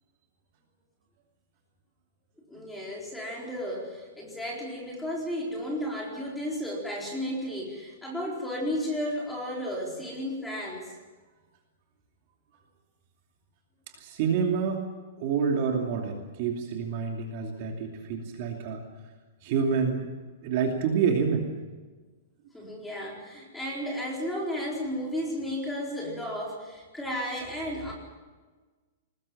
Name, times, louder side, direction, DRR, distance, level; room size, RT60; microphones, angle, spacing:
voice 1, 2.5-10.9 22.5-27.9, equal, 5° left, -3 dB, 4.3 m, -33 dB
voice 2, 13.9-14.8 15.2-18.8 19.4-20.1 20.4-21.5, right 6 dB, 35° right, 1 dB, 2.7 m, -27 dB
22.0 x 20.5 x 7.3 m, 1.3 s
supercardioid pair, 180°, 0 cm